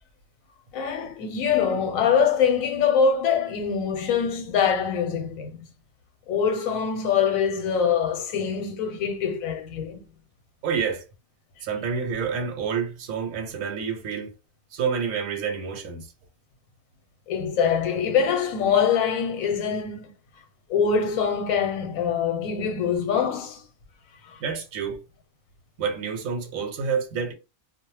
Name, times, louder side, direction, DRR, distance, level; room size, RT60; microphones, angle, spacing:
voice 1, 0.7-5.6 6.3-10.0 17.3-20.1 20.7-23.6 24.3-24.4, left 6 dB, 85° left, 1.1 m, -24 dB
voice 2, 10.6-11.0 11.6-14.3 14.7-16.1 24.4-25.0 25.8-27.3, right 6 dB, 80° right, 1.0 m, -28 dB
2.3 x 2.1 x 3.0 m
omnidirectional pair, 1.4 m